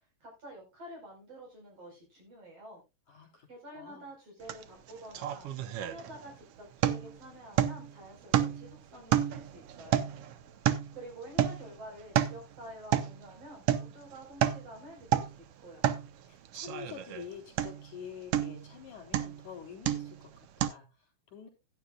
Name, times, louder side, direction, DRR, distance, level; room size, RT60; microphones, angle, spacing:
voice 1, 0.2-2.8 3.5-10.0 11.0-15.2 15.6-15.9, equal, 45° right, 2 dB, 5.5 m, -49 dB
voice 2, 3.1-3.5 3.7-4.1 10.4-10.7 16.2-21.5, left 8 dB, 65° left, 0 dB, 5.1 m, -47 dB
sound 1, 4.5-4.6 4.9-6.4 6.8-7.2 7.6-7.9 8.3-8.7 9.1-11.0 11.4-11.7 12.0-12.4 12.9-13.2 13.7-13.9 14.2-14.7 15.0-15.4 15.8-16.1 16.5-17.3 17.6-17.9 18.3-18.7 19.1-19.4 19.9-20.2 20.6-20.7, right 11 dB, 85° right, 1.3 m, -29 dB
16.0 x 9.9 x 2.3 m, 0.26 s
omnidirectional pair, 3.8 m